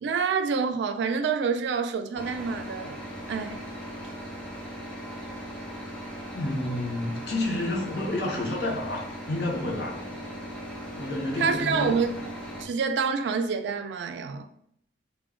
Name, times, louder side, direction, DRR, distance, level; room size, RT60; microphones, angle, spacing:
voice 1, 0.0-3.0 3.3-3.7 11.4-12.1 12.6-14.5, right 5 dB, 80° right, 0.3 m, -27 dB
sound 1, 2.2-12.6, equal, 5° left, 0.5 m, -39 dB
voice 2, 6.3-10.2 11.0-12.0, left 1 dB, 65° left, 0.7 m, -30 dB
2.1 x 2.1 x 3.5 m
head